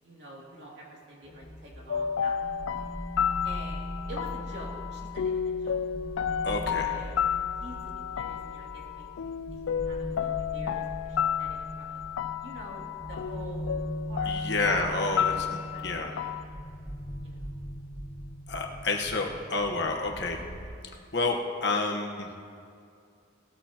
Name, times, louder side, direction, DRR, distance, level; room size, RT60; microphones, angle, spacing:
voice 1, 0.0-2.7 3.4-6.3 6.7-7.2 7.6-9.1 9.5-12.0 12.4-14.8 15.1-16.2 17.2-17.5, right 1 dB, 60° right, -4 dB, 2.7 m, -47 dB
sound 1, 1.2-20.6, equal, 15° left, 2.1 m, -40 dB
sound 2, 1.9-16.4, left 8 dB, 90° left, 0.4 m, -32 dB
voice 2, 6.4-6.9 14.3-15.5 15.8-16.1 18.5-20.4 21.1-22.4, left 3 dB, 60° left, 1 dB, 1.2 m, -29 dB
18.0 x 13.0 x 2.9 m, 2.3 s
head